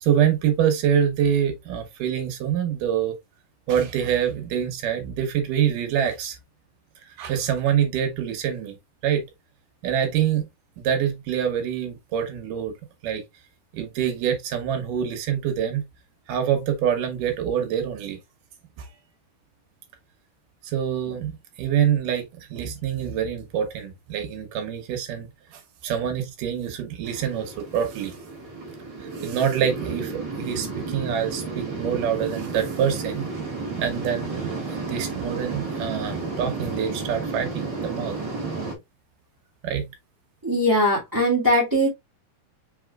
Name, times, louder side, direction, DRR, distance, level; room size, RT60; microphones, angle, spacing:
voice 1, 0.0-3.2 3.7-6.4 7.1-8.8 9.0-9.3 9.8-10.4 10.8-12.7 13.0-13.2 13.7-15.8 16.3-18.2 18.8-18.9 20.6-28.1 29.2-33.3 33.8-34.6 34.9-38.2 39.6-39.9, right 9 dB, 75° right, 2.5 m, -25 dB
sound 1, 27.0-38.7, right 3 dB, 50° right, 1.4 m, -32 dB
voice 2, 40.4-41.9, equal, 15° right, 0.8 m, -20 dB
5.5 x 4.1 x 2.3 m
omnidirectional pair, 4.0 m